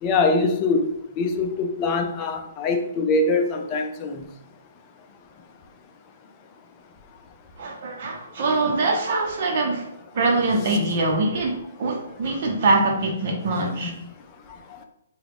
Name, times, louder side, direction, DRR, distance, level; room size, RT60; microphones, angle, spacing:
voice 1, 0.0-0.9 1.2-4.2 13.8-13.9, left 3 dB, 25° left, 5 dB, 0.5 m, -23 dB
voice 2, 7.6-9.9 10.1-13.9, right 2 dB, 50° right, 0 dB, 0.9 m, -23 dB
4.7 x 2.3 x 3.6 m, 0.86 s
hypercardioid pair, 155°, 0 cm